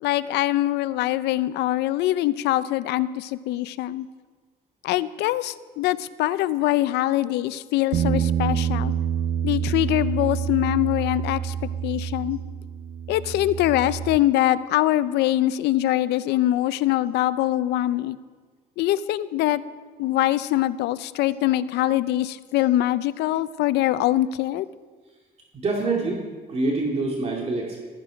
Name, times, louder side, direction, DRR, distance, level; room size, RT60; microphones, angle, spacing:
voice 1, 0.0-4.1 4.8-8.9 9.4-11.5 11.8-12.4 13.1-18.2 18.8-19.6 20.0-24.7, left 14 dB, 80° left, 15 dB, 0.6 m, -23 dB
Bass guitar, 7.9-14.2, right 9 dB, 55° right, 0.5 m, -27 dB
voice 2, 25.5-27.8, right 3 dB, 40° right, -1 dB, 2.6 m, -26 dB
14.5 x 13.0 x 5.2 m, 1.4 s
cardioid pair, 110°, 17 cm